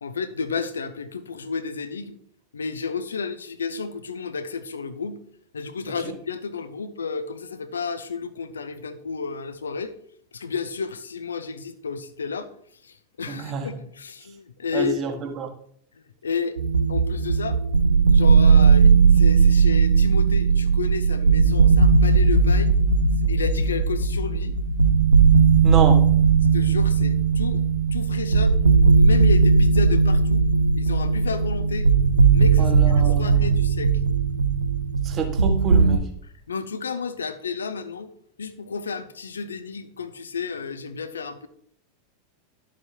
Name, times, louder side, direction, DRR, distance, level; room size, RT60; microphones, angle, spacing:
voice 1, 0.0-2.2 2.5-5.2 5.5-9.9 10.3-12.5 12.8-15.0 15.9-16.6 16.9-17.6 18.0-22.7 23.1-24.6 26.5-27.6 27.9-28.6 28.8-30.5 30.7-31.9 32.3-34.0 36.2-38.1 38.4-41.5, left 5 dB, 70° left, 13 dB, 0.8 m, -32 dB
voice 2, 13.3-13.8 14.7-15.5 25.6-26.0 32.6-33.3 35.0-36.1, right 5 dB, 30° right, 4 dB, 1.7 m, -28 dB
sound 1, 16.6-36.0, right 5 dB, 75° right, 0.6 m, -18 dB
12.0 x 7.4 x 2.9 m, 0.66 s
figure-of-eight pair, 85°, 0 cm